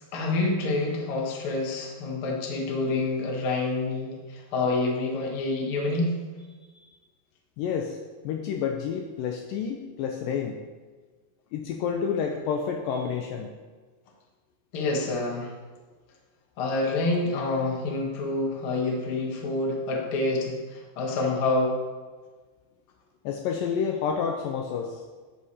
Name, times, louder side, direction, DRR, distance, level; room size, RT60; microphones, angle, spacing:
voice 1, 0.1-6.2 14.7-15.5 16.6-21.8, left 2 dB, 60° left, -1 dB, 1.4 m, -27 dB
voice 2, 7.6-8.0 8.2-10.6 11.5-13.5 23.3-25.0, left 7 dB, 90° left, 3 dB, 2.0 m, -29 dB
13.0 x 4.8 x 4.2 m, 1.4 s
omnidirectional pair, 4.6 m